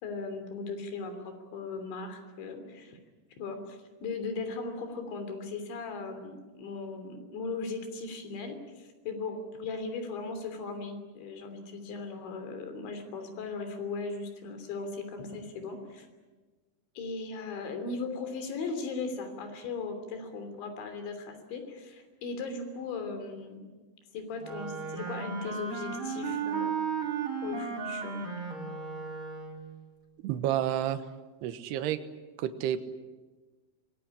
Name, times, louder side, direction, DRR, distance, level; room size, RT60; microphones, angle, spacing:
voice 1, 0.0-3.0 3.4-16.1 17.0-23.7 24.1-26.7 27.4-28.3, left 4 dB, 85° left, 7 dB, 5.5 m, -38 dB
Wind instrument woodwind instrument, 24.4-29.8, right 5 dB, 30° right, 3.7 m, -35 dB
voice 2, 30.2-31.0 31.4-32.0 32.4-32.8, right 11 dB, 75° right, 10 dB, 3.1 m, -30 dB
25.0 x 21.0 x 9.9 m, 1.3 s
omnidirectional pair, 5.1 m